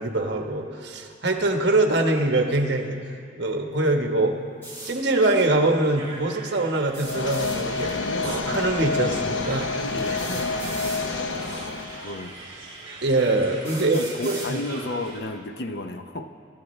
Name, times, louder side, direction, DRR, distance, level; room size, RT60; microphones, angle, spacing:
voice 1, 0.0-4.4 4.8-9.7 11.4-11.7 13.0-14.6, right 2 dB, 65° right, 3 dB, 1.3 m, -24 dB
sound 1, 4.6-4.9 6.9-7.6 9.0-9.1 10.2-11.0 12.0-12.1 12.8-12.9 13.6-14.5, right 2 dB, 15° left, 4.6 m, -38 dB
sound 2, 6.0-15.2, right 2 dB, 25° right, 3.5 m, -42 dB
sound 3, 7.0-12.2, left 3 dB, 85° left, 0.9 m, -28 dB
voice 2, 9.9-10.6 11.0-11.2 11.5-12.4 13.7-16.3, left 2 dB, 60° left, 7 dB, 0.7 m, -34 dB
25.0 x 12.0 x 3.2 m, 2.3 s
head